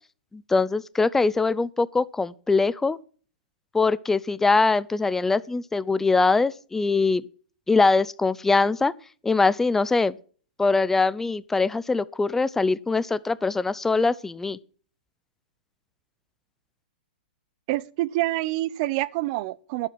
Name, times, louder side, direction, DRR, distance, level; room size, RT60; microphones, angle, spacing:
voice 1, 0.3-3.0 3.7-7.2 7.7-8.9 9.2-10.1 10.6-14.6, left 3 dB, 5° left, 0.5 m, -22 dB
voice 2, 17.7-19.9, right 17 dB, 40° right, 0.7 m, -27 dB
11.5 x 7.7 x 5.8 m
hypercardioid pair, 140°, 5 cm